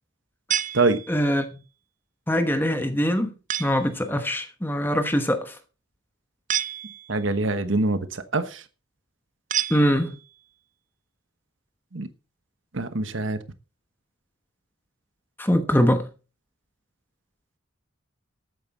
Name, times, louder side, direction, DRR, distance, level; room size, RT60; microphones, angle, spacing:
sound 1, 0.5-1.4 3.5-4.0 6.5-7.3 9.5-10.4, right 10 dB, 40° right, 0.5 m, -30 dB
voice 1, 1.1-1.6 2.3-3.3 3.6-5.6 9.7-10.2 15.4-16.1, equal, 10° left, 1.1 m, -23 dB
voice 2, 7.1-8.6 11.9-12.1 12.7-13.4, right 3 dB, 75° right, 1.1 m, -24 dB
13.5 x 9.1 x 4.2 m
head